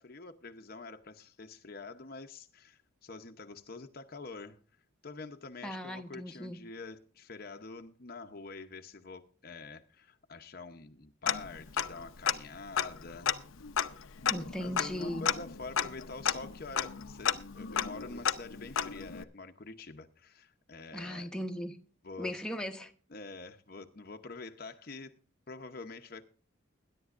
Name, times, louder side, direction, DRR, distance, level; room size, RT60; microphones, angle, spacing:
voice 1, 0.0-4.6 5.0-13.3 14.6-21.3 22.0-22.4 23.1-25.2 25.5-26.2, left 3 dB, 45° left, 0.8 m, -46 dB
voice 2, 5.6-6.6 14.3-15.2 20.9-21.8 22.2-22.9, equal, 5° left, 0.9 m, -38 dB
Tick-tock, 11.3-12.0 12.3-12.4 12.7-19.2, left 8 dB, 80° left, 0.7 m, -33 dB
21.5 x 10.5 x 2.5 m
head